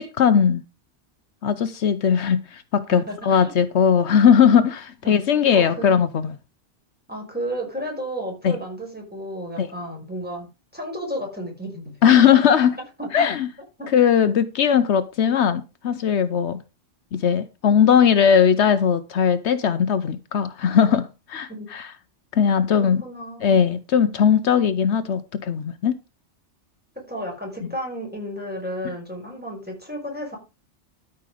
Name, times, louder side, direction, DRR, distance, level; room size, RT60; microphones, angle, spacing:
voice 1, 0.2-0.6 1.4-6.3 8.4-8.6 9.6-9.7 12.0-12.7 13.1-13.5 13.9-16.6 17.1-21.9 22.3-23.0 23.4-26.0, left 8 dB, 75° left, 1.0 m, -19 dB
voice 2, 2.9-3.5 5.0-5.2 5.5-5.9 7.1-10.5 10.7-12.0 13.0-13.3 13.8-13.9 21.5-21.7 22.7-23.7 27.0-30.4, equal, 10° right, 5.4 m, -32 dB
13.0 x 5.9 x 4.9 m
omnidirectional pair, 1.2 m